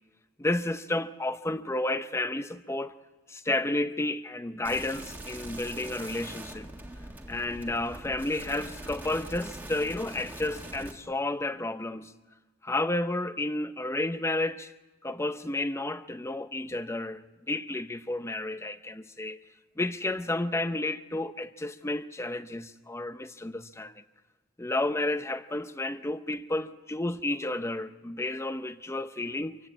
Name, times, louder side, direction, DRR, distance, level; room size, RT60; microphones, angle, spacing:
voice 1, 0.4-3.0 3.3-6.7 7.3-12.1 12.6-14.7 15.0-19.4 19.8-24.0 24.6-29.6, left 2 dB, 15° left, 0.6 m, -31 dB
sound 1, 4.6-10.9, right 1 dB, 10° right, 1.6 m, -42 dB
25.5 x 15.5 x 8.4 m
head